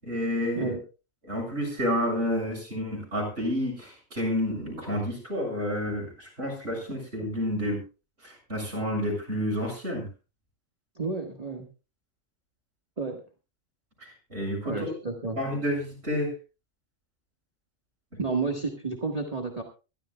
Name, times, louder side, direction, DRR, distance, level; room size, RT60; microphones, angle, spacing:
voice 1, 0.0-0.7 1.2-7.8 8.2-10.1 14.0-14.9 15.4-16.3, equal, 50° right, -1 dB, 7.2 m, -30 dB
voice 2, 10.9-11.7 13.0-13.2 14.6-15.4 18.2-19.6, right 4 dB, 30° right, 1 dB, 1.7 m, -31 dB
23.5 x 12.5 x 2.3 m, 0.31 s
omnidirectional pair, 1.4 m